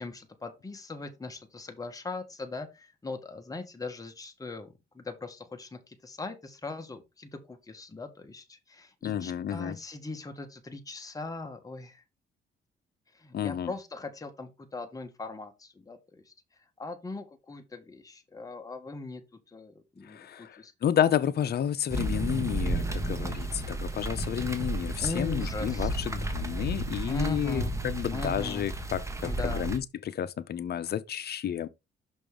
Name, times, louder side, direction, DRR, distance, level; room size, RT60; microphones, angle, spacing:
voice 1, 0.0-12.0 13.1-19.2 19.5-20.7 25.0-26.0 27.1-27.7 28.1-28.7 29.2-29.7, left 3 dB, 15° left, 1.3 m, -40 dB
voice 2, 9.0-9.8 13.3-13.7 20.1-31.7, left 9 dB, 55° left, 0.7 m, -31 dB
sound 1, 21.9-29.8, right 1 dB, 15° right, 1.5 m, -32 dB
6.2 x 5.2 x 3.7 m
cardioid pair, 90°, 20 cm